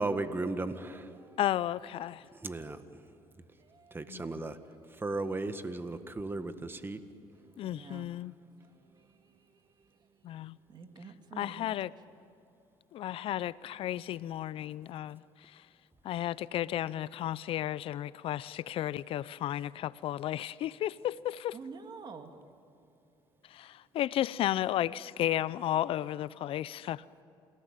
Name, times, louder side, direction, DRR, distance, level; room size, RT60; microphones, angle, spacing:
voice 1, 0.0-1.1 2.3-3.1 3.9-4.6 4.9-7.0, right 2 dB, 20° right, 1.7 m, -35 dB
voice 2, 1.4-2.2 4.1-4.5 7.6-8.3 10.2-10.6 11.4-11.9 12.9-15.6 16.0-21.5 23.5-27.0, left 12 dB, 65° left, 0.5 m, -33 dB
voice 3, 3.6-3.9 7.6-8.1 10.7-11.7 21.5-22.3, right 5 dB, 45° right, 2.5 m, -48 dB
28.0 x 18.5 x 9.0 m
supercardioid pair, 80°, 10 cm